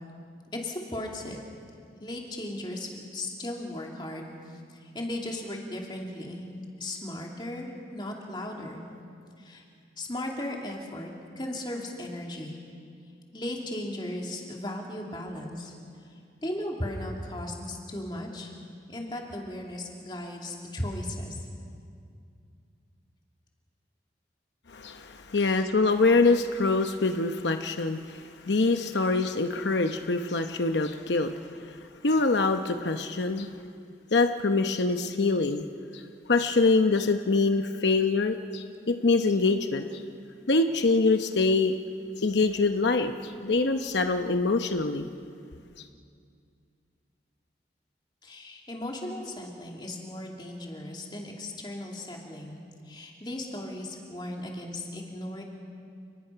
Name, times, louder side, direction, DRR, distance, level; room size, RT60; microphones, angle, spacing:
voice 1, 0.5-1.4 2.0-4.3 4.7-6.5 6.8-8.8 9.4-9.6 10.0-11.1 11.4-12.6 13.3-15.7 16.4-18.5 18.9-21.5 25.4-25.6 48.2-52.6 52.9-55.4, left 1 dB, 25° left, 0 dB, 2.8 m, -36 dB
voice 2, 24.7-31.3 32.0-33.5 34.1-35.6 35.9-36.0 36.3-40.0 40.5-41.8 42.2-45.1, left 3 dB, 85° left, 7 dB, 0.9 m, -24 dB
29.5 x 20.0 x 5.8 m, 2.4 s
head